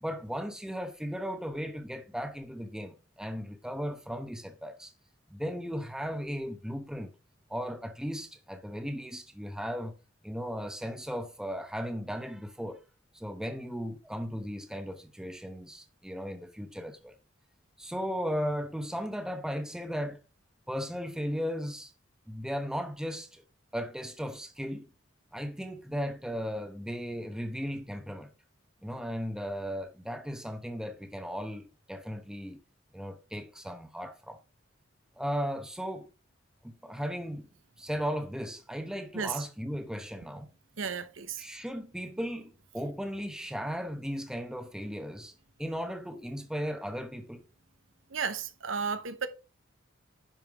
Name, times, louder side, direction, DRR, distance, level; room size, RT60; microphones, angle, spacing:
voice 1, 0.0-4.9 5.3-7.1 7.5-10.0 10.2-12.8 13.1-17.1 17.8-20.2 20.7-21.9 22.3-23.4 23.7-24.9 25.3-28.3 28.8-32.6 32.9-34.4 35.2-36.1 36.6-37.5 37.8-40.5 41.4-45.3 45.6-47.4, equal, 5° right, 0.9 m, -36 dB
voice 2, 39.1-39.5 40.8-41.4 48.1-49.3, right 6 dB, 75° right, 0.9 m, -33 dB
10.5 x 5.6 x 3.6 m
head